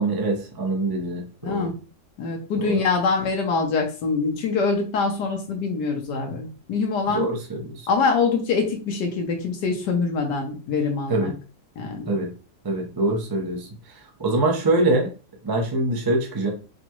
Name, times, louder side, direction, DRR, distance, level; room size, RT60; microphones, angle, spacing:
voice 1, 0.0-1.7 2.6-2.8 7.1-7.9 11.1-11.3 12.1-12.3 12.6-13.7 13.9-15.1 15.4-16.5, right 2 dB, 35° right, 1 dB, 0.3 m, -24 dB
voice 2, 2.2-7.3 7.9-11.3 11.8-12.1, left 4 dB, 75° left, 2 dB, 1.4 m, -24 dB
5.0 x 2.3 x 2.9 m, 0.34 s
omnidirectional pair, 1.9 m